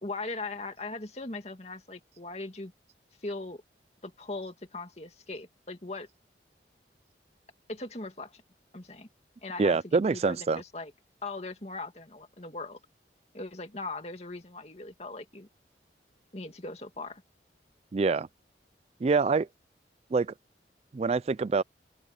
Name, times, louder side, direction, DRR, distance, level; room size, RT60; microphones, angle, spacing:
voice 1, 0.0-2.7 3.2-3.6 4.0-6.1 7.7-8.4 8.7-9.1 9.4-10.9 11.2-12.8 13.3-15.5 16.3-17.2, left 2 dB, 35° left, 2.4 m, -39 dB
voice 2, 9.6-10.6 17.9-18.3 19.0-19.5 20.1-20.3 20.9-21.6, right 4 dB, 35° right, 0.3 m, -25 dB
open air
head